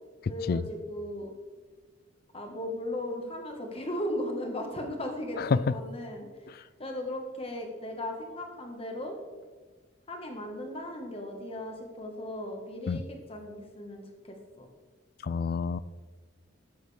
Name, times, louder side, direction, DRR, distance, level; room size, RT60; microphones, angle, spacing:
voice 1, 0.3-1.3 2.3-6.3 6.8-9.1 10.1-14.7, left 1 dB, 30° left, 3 dB, 1.3 m, -37 dB
voice 2, 15.2-15.8, left 5 dB, 50° left, 17 dB, 0.3 m, -27 dB
12.0 x 7.8 x 3.3 m, 1.4 s
head